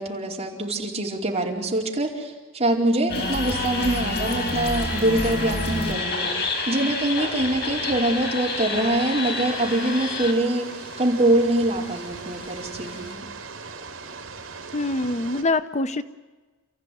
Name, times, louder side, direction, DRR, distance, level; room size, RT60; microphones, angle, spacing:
voice 1, 0.0-10.7 11.0-13.3, right 1 dB, 30° right, -2 dB, 4.7 m, -24 dB
sound 1, 3.1-13.1, left 3 dB, 55° left, 5.4 m, -29 dB
sound 2, 3.1-15.4, right 4 dB, 75° right, 3.5 m, -39 dB
voice 2, 14.7-16.0, left 2 dB, 35° left, 11 dB, 0.7 m, -24 dB
29.5 x 15.5 x 9.4 m, 1.3 s
head